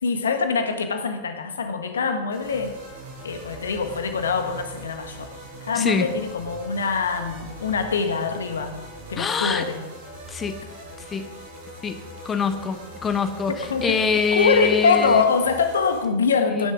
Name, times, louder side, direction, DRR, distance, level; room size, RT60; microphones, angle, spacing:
voice 1, 0.0-2.8 3.2-5.3 5.6-8.8 9.1-9.8 13.5-14.0 14.3-16.7, left 5 dB, 70° left, 7 dB, 1.5 m, -24 dB
sound 1, 2.3-16.0, right 1 dB, 60° right, 5.3 m, -41 dB
voice 2, 5.7-6.1 9.2-9.7 10.3-10.6 11.0-11.3 11.8-12.0 12.2-15.2 16.5-16.6, left 5 dB, 20° left, 8 dB, 1.0 m, -24 dB
19.5 x 10.5 x 3.8 m, 1.2 s
figure-of-eight pair, 90°, 0 cm